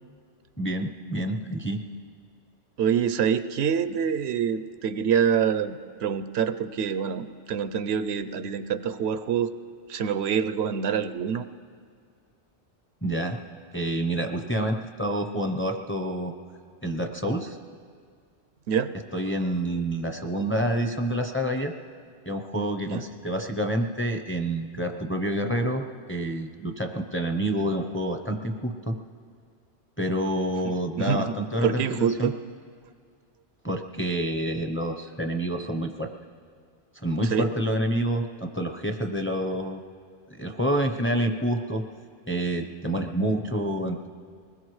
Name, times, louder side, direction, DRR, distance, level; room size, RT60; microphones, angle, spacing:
voice 1, 0.6-1.8 13.0-13.4 13.7-16.3 16.8-17.6 19.1-21.7 22.3-29.0 30.0-32.3 33.6-36.1 36.9-39.8 40.3-41.8 42.3-44.1, right 1 dB, 15° left, 4 dB, 0.6 m, -28 dB
voice 2, 2.8-9.5 9.9-11.5 18.7-18.9 22.9-23.0 30.6-31.3 31.6-32.3 37.3-37.5, right 8 dB, 75° right, 12 dB, 0.8 m, -26 dB
22.0 x 20.5 x 3.2 m, 2.1 s
omnidirectional pair, 1.1 m